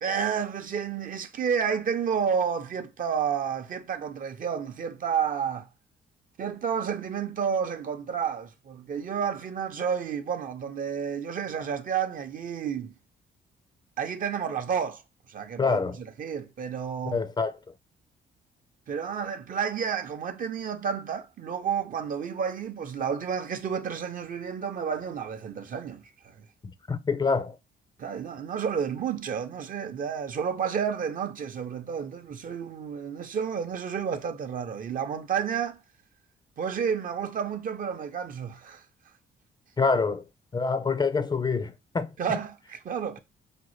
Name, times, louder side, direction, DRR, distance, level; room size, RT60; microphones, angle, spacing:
voice 1, 0.0-5.7 6.4-12.9 14.0-15.0 15.3-17.2 18.9-26.4 28.0-35.8 36.6-38.8 42.2-43.2, right 7 dB, 50° right, 0.6 m, -31 dB
voice 2, 15.6-16.0 17.1-17.6 26.6-27.6 39.8-40.2 40.5-42.1, left 4 dB, 25° left, 0.4 m, -26 dB
5.0 x 2.1 x 3.1 m
cardioid pair, 75°, 18 cm